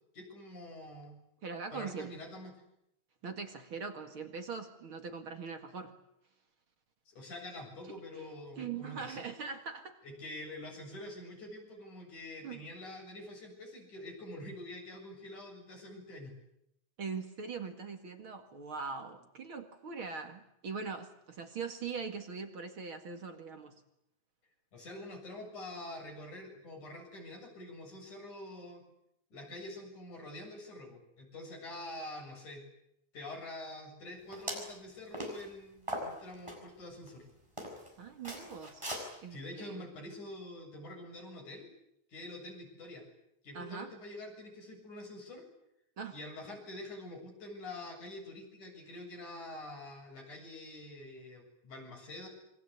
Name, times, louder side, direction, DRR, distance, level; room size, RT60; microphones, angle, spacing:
voice 1, 0.1-1.2 1.7-2.5 7.1-9.2 10.0-16.3 24.7-28.8 29.3-32.6 33.1-37.3 39.3-41.7 42.1-43.0 43.4-45.5 46.1-52.3, left 1 dB, 85° left, 2 dB, 9.0 m, -46 dB
voice 2, 1.4-2.1 3.2-5.9 7.9-8.3 8.6-10.0 12.4-12.6 17.0-23.8 38.0-38.8 39.2-39.8 43.5-43.9 46.0-46.2, right 5 dB, 45° right, 5 dB, 2.6 m, -41 dB
sound 1, 34.3-34.7 35.1-35.4 35.9-36.6 37.1-37.2 37.6-37.9 38.2-39.0, equal, 10° right, 6.4 m, -39 dB
27.5 x 24.0 x 8.4 m, 0.80 s
omnidirectional pair, 3.4 m